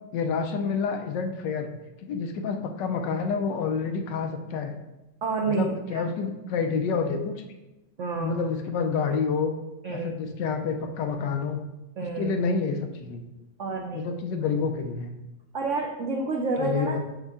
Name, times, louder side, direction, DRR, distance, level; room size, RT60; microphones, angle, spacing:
voice 1, 0.1-1.7 2.0-4.7 5.4-7.4 8.1-9.5 9.9-11.6 12.2-13.2 13.9-15.1 16.6-17.0, left 5 dB, 75° left, 5 dB, 1.2 m, -28 dB
voice 2, 5.2-6.0 8.0-8.3 9.8-10.2 12.0-12.3 13.6-14.1 15.5-17.0, right 3 dB, 80° right, 1 dB, 0.6 m, -29 dB
5.4 x 5.3 x 3.6 m, 0.99 s
omnidirectional pair, 2.1 m